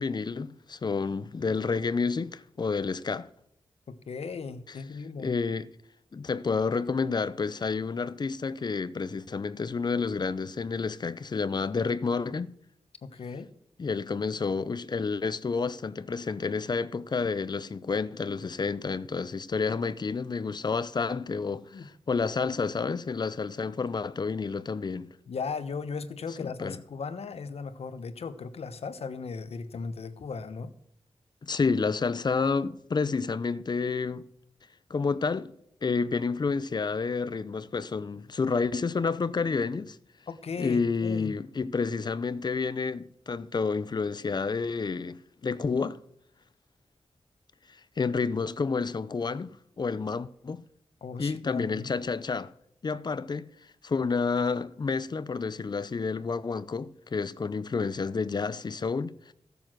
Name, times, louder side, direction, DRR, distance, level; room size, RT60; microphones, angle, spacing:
voice 1, 0.0-3.3 4.7-4.8 5.2-5.7 6.1-12.5 13.8-25.1 26.4-26.8 31.4-34.3 34.9-35.6 35.8-40.0 40.6-46.0 48.0-50.6 51.2-52.5 52.8-53.5 53.8-59.3, left 4 dB, 45° left, 0.6 m, -30 dB
voice 2, 3.9-5.3 13.0-13.5 21.7-21.9 25.3-30.7 40.3-41.3 51.0-51.9, left 5 dB, 75° left, 1.1 m, -37 dB
15.5 x 7.0 x 6.1 m
wide cardioid pair, 120°, 10 cm